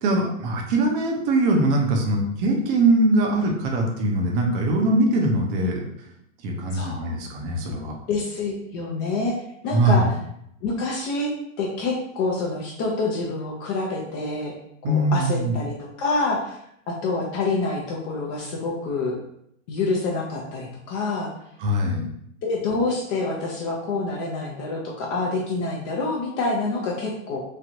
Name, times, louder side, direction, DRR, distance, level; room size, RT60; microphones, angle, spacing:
voice 1, 0.0-5.8 6.4-8.0 9.7-10.1 14.8-15.5 21.6-22.1, right 2 dB, 40° right, 0 dB, 0.7 m, -22 dB
voice 2, 6.7-7.1 8.1-9.3 9.6-10.0 10.6-11.3 11.6-14.5 14.8-16.6 17.0-19.1 19.7-21.3 22.4-27.4, left 3 dB, 35° left, -2 dB, 0.5 m, -27 dB
3.2 x 2.4 x 2.6 m, 0.73 s
hypercardioid pair, 125°, 40 cm